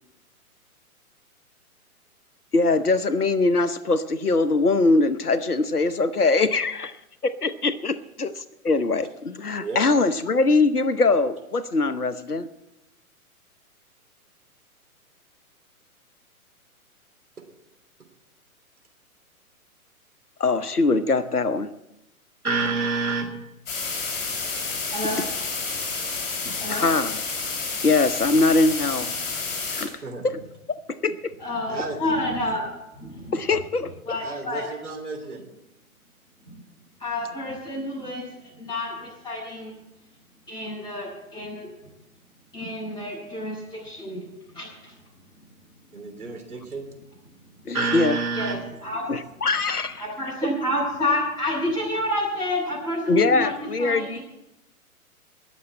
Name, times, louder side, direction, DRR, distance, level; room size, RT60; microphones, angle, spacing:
voice 1, 2.5-6.9 7.2-12.5 20.4-21.7 26.7-27.2 27.8-29.1 29.7-30.4 30.9-31.1 33.3-34.2 47.7-48.2 49.1-50.1 53.1-54.2, left 3 dB, 85° left, 13 dB, 0.9 m, -22 dB
voice 2, 22.4-23.3 30.0-30.2 31.7-32.0 34.2-35.4 45.9-46.9 47.7-48.6, right 4 dB, 75° right, 3 dB, 3.2 m, -28 dB
sound 1, 23.7-29.8, left 4 dB, 40° left, 5.7 m, -30 dB
voice 3, 31.4-32.7 33.0-33.4 34.1-34.7 36.5-36.6 37.0-38.2 38.6-39.7 40.5-41.7 42.5-44.3 44.5-44.9 48.3-49.0 50.0-54.2, left 1 dB, 10° left, -5 dB, 7.7 m, -29 dB
19.5 x 7.2 x 7.7 m, 0.91 s
figure-of-eight pair, 120°, 44 cm